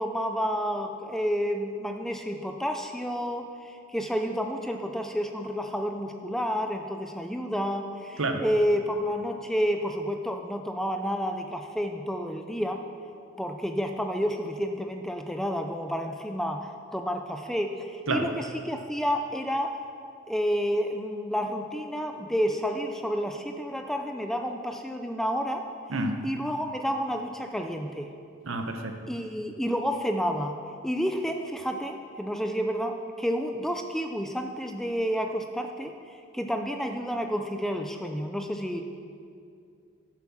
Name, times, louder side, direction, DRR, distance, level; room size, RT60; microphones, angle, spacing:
voice 1, 0.0-12.8 13.4-19.8 20.3-25.6 25.9-28.1 29.1-38.8, equal, ahead, 5 dB, 0.4 m, -30 dB
voice 2, 28.5-28.9, right 2 dB, 65° right, 5 dB, 1.0 m, -28 dB
11.0 x 7.6 x 6.1 m, 2.4 s
head